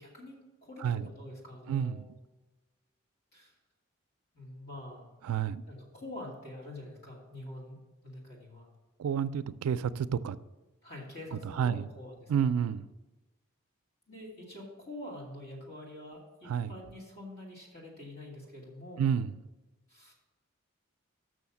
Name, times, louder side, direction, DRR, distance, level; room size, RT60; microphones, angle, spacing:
voice 1, 0.0-2.1 3.3-3.5 4.3-5.1 5.7-8.7 10.8-12.5 14.1-19.1 19.9-20.1, left 1 dB, 45° left, 2.8 m, -46 dB
voice 2, 0.8-1.1 1.7-2.1 5.2-5.6 9.0-10.4 11.3-11.9 12.3-12.9 16.5-16.7 19.0-19.3, right 8 dB, 90° right, 0.3 m, -30 dB
6.3 x 6.3 x 7.1 m
head